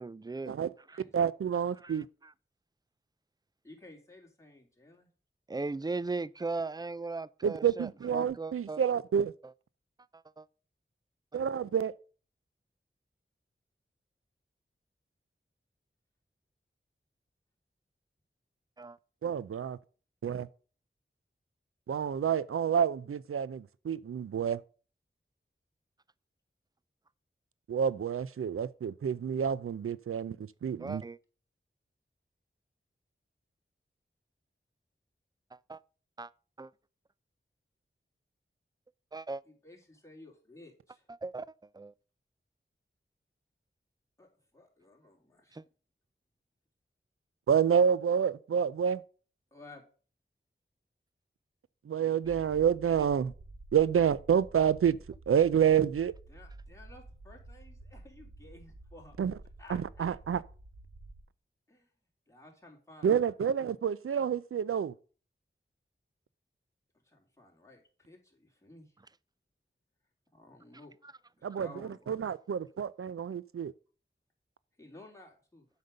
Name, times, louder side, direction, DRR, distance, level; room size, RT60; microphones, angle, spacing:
voice 1, 0.0-0.6 0.9-1.0 1.8-2.3 5.5-8.8 10.1-10.5 11.3-11.4 18.8-19.0 30.8-31.2 35.5-35.8 36.2-36.3 36.6-36.7 39.1-39.4 41.2-41.5 41.7-41.9 45.5-45.6, right 3 dB, 20° right, 0.4 m, -38 dB
voice 2, 1.1-2.1 7.4-9.3 11.3-11.9 19.2-19.8 20.2-20.5 21.9-24.6 27.7-31.0 47.5-49.0 51.9-53.3 53.7-55.0 55.3-56.1 59.2-59.3 59.7-60.4 63.0-64.9 71.4-71.7 72.1-73.7, right 8 dB, 90° right, 0.4 m, -28 dB
voice 3, 3.6-5.1 39.5-41.1 44.2-45.6 49.5-49.8 56.3-59.1 59.6-60.1 61.7-61.9 62.3-63.4 67.0-69.0 70.3-70.9 71.4-72.3 74.8-75.7, left 2 dB, 15° left, 3.2 m, -54 dB
sound 1, 52.2-61.2, right 2 dB, 70° right, 1.6 m, -51 dB
7.9 x 5.3 x 6.5 m
wide cardioid pair, 50°, 21 cm